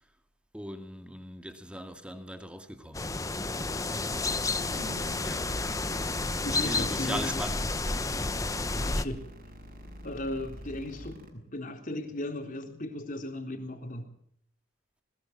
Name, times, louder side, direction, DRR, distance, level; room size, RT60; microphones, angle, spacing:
voice 1, 0.5-3.1 4.2-4.7 5.2-5.6 6.5-7.8, equal, 5° right, 2.0 m, -39 dB
sound 1, 2.9-9.1, left 3 dB, 15° left, 1.0 m, -31 dB
sound 2, 4.6-11.3, equal, 45° right, 6.4 m, -44 dB
voice 2, 6.4-7.4 8.7-9.3 10.0-14.2, left 1 dB, 40° left, 4.0 m, -37 dB
21.0 x 21.0 x 6.0 m
head